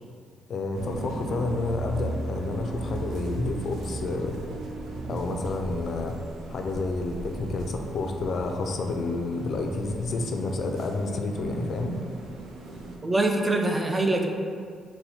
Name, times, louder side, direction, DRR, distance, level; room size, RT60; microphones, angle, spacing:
voice 1, 0.5-4.4 5.0-6.2 6.5-12.0, left 3 dB, 55° left, 4 dB, 0.3 m, -29 dB
sound 1, 0.7-13.0, right 1 dB, 75° right, 0.5 m, -36 dB
voice 2, 13.0-14.3, right 2 dB, 20° right, 3 dB, 0.4 m, -24 dB
4.1 x 2.1 x 4.1 m, 2.2 s
cardioid pair, 90°, 0 cm